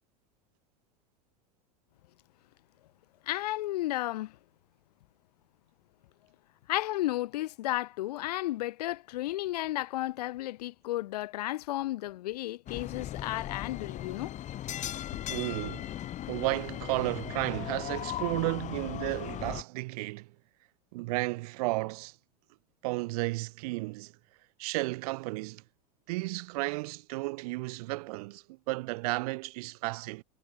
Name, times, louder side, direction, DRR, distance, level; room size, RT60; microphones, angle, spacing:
voice 1, 3.3-4.3 6.7-14.3, left 16 dB, 80° left, 7.9 m, -33 dB
sound 1, 12.7-19.6, left 12 dB, 35° left, 4.6 m, -38 dB
voice 2, 15.3-15.9 16.3-20.3 20.9-22.1 22.8-24.1 24.6-25.6 26.1-30.2, right 23 dB, 70° right, 4.4 m, -33 dB
supercardioid pair, 120°, 20 cm